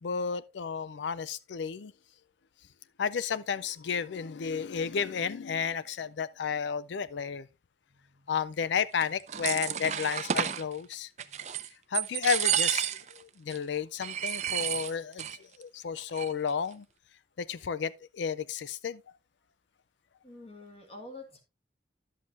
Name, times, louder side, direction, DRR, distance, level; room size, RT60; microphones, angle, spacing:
voice 1, 0.0-1.9 3.0-7.5 8.3-11.1 11.9-12.9 13.1-15.3 15.6-16.8 17.4-19.0, left 6 dB, 85° left, 0.4 m, -32 dB
voice 2, 7.9-8.3 11.2-11.5 20.2-21.4, left 2 dB, 35° left, 1.9 m, -49 dB
sound 1, 9.0-10.6 11.2-11.7 11.9-13.2 13.5-13.6 14.0-15.4 15.6-15.7 16.0-16.5, right 9 dB, 40° right, 0.5 m, -31 dB
11.0 x 7.5 x 2.5 m
head